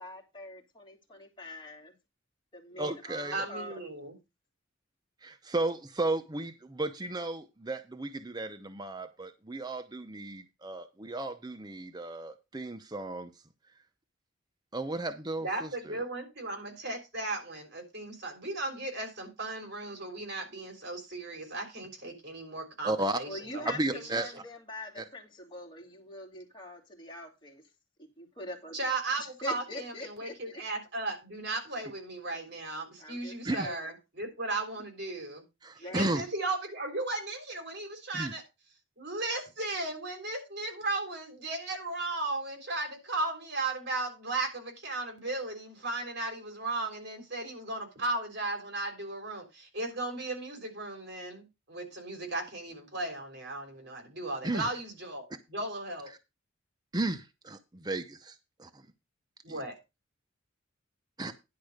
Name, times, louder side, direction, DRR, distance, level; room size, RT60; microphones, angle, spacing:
voice 1, 0.0-1.9 2.5-3.8 23.2-27.6 28.0-28.8 29.2-30.6 33.0-33.9 35.8-36.0, left 1 dB, 25° left, 2.7 m, -44 dB
voice 2, 2.8-3.4 5.2-13.3 14.7-16.0 22.8-23.2 23.7-24.3 25.0-25.1 33.4-33.7 35.6-36.2 38.1-38.3 54.4-54.7 56.9-58.8 61.2-61.3, right 2 dB, 20° right, 0.7 m, -34 dB
voice 3, 3.3-4.2 15.4-24.3 28.7-35.4 35.8-38.4 39.0-56.1 59.4-59.7, right 2 dB, 55° right, 3.6 m, -36 dB
10.5 x 4.6 x 6.5 m
head